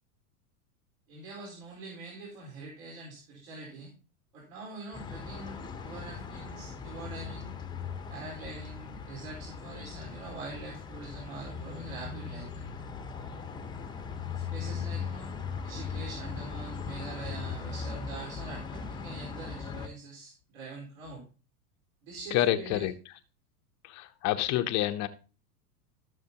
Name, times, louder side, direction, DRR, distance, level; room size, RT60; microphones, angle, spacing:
voice 1, 1.1-3.9 4.3-7.5 8.1-12.7 14.3-15.4 15.6-21.2 22.0-22.9, right 3 dB, 65° right, 4.5 m, -44 dB
sound 1, 4.9-19.9, left 5 dB, 10° left, 0.9 m, -39 dB
voice 2, 22.3-22.9 23.8-25.1, left 14 dB, 35° left, 0.8 m, -28 dB
16.0 x 6.5 x 2.9 m
supercardioid pair, 130°, 45 cm